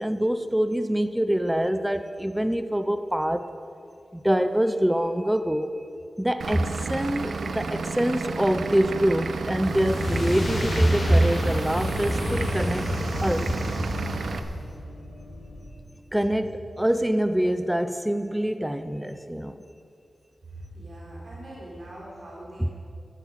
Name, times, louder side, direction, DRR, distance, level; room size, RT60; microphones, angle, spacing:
voice 1, 0.0-3.4 4.1-5.7 6.2-12.9 13.2-13.5 16.1-19.6 22.6-22.7, right 1 dB, 5° right, 9 dB, 0.5 m, -25 dB
Vehicle / Engine, 6.4-14.4, right 4 dB, 80° right, 0.8 m, -32 dB
sound 1, 9.4-14.8, left 1 dB, 55° left, 3.1 m, -30 dB
sound 2, 10.1-15.7, left 1 dB, 90° left, 3.1 m, -45 dB
voice 2, 20.5-22.7, right 1 dB, 50° right, -6 dB, 3.8 m, -41 dB
13.0 x 11.5 x 7.7 m, 2.5 s
wide cardioid pair, 135°, 0 cm